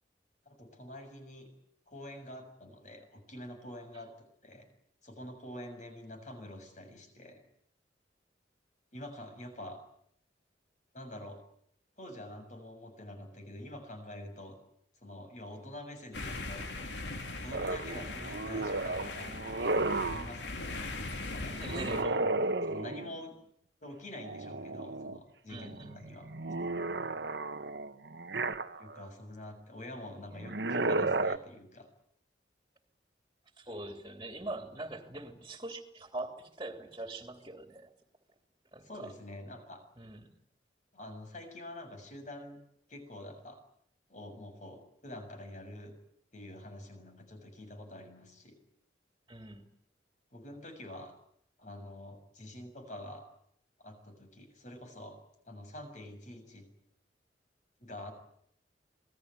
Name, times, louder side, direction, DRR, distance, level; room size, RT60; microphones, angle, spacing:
voice 1, 0.4-1.5 1.9-4.6 5.0-7.4 8.9-9.8 10.9-11.4 12.0-14.6 15.0-16.7 17.4-22.3 22.7-23.3 23.8-26.3 28.8-31.9 38.8-39.8 40.9-42.6 42.9-43.6 44.1-45.9 46.3-48.6 50.3-51.1 51.6-53.2 53.8-55.1 55.4-56.7 57.8-58.1, left 1 dB, 45° left, 6 dB, 6.8 m, -46 dB
sound 1, 16.1-22.0, left 2 dB, 80° left, 3.2 m, -40 dB
sound 2, 17.5-20.3 21.6-23.2 24.1-25.2 25.6-29.1 30.4-31.4, right 2 dB, 75° right, 1.4 m, -33 dB
voice 2, 21.5-22.0 25.5-26.0 33.6-37.9 38.7-39.1 40.0-40.3 49.3-49.6, right 2 dB, 20° right, 5 dB, 3.0 m, -42 dB
27.0 x 19.5 x 9.6 m, 0.70 s
head